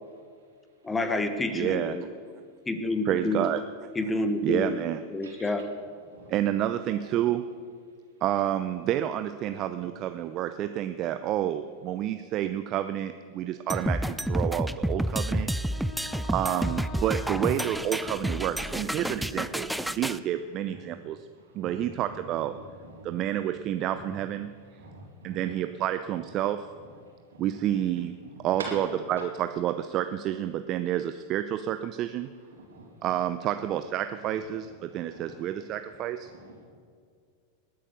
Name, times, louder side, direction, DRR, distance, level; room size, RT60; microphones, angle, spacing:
voice 1, 0.8-2.0 2.7-3.5 3.9-4.8 5.1-5.6, left 2 dB, 15° left, 9 dB, 1.4 m, -28 dB
voice 2, 1.5-2.0 3.0-3.6 4.4-5.0 6.3-7.4 8.2-15.5 16.3-21.3 21.5-22.5 23.0-24.5 25.2-26.7 27.4-28.1 28.4-32.3 33.0-36.3, right 11 dB, 40° right, 10 dB, 0.6 m, -29 dB
voice 3, 9.5-9.8 14.6-14.7 15.6-16.1 18.2-19.8 20.7-20.8 21.6-21.9 22.6-23.1 24.1-24.2 24.8-25.5 26.8-26.9 27.3-27.8 28.2-28.7 32.7-32.9 34.7-34.8 35.0-35.5 36.2-36.5, right 3 dB, 80° right, 0 dB, 3.9 m, -45 dB
sound 1, 13.7-20.2, equal, ahead, 0.5 m, -30 dB
Wind instrument woodwind instrument, 15.7-19.7, left 4 dB, 35° left, 1.8 m, -46 dB
20.0 x 8.8 x 6.8 m, 2.1 s
hypercardioid pair, 95°, 0 cm